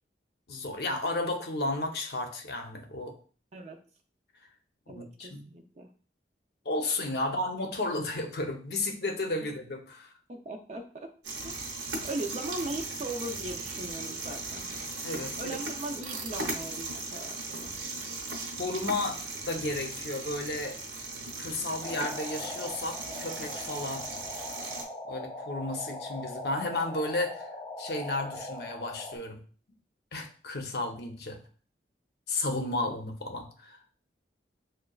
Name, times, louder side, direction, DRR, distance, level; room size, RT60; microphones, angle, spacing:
voice 1, 0.5-3.1 4.9-5.4 6.6-10.1 15.0-15.6 18.6-19.2 19.5-20.8 21.4-24.1 25.1-27.5 27.8-29.4 30.1-31.4 32.3-33.8, left 2 dB, 65° left, 4 dB, 0.7 m, -33 dB
voice 2, 4.9-5.9 7.2-7.3 9.4-9.5 10.3-11.1 11.4-11.7 12.0-14.7 15.4-17.7, right 2 dB, 40° right, 2 dB, 0.4 m, -39 dB
sound 1, 11.2-24.8, right 3 dB, 80° right, 0.8 m, -38 dB
sound 2, 21.8-29.2, left 2 dB, 25° left, 0.3 m, -41 dB
6.3 x 2.2 x 2.3 m, 0.41 s
head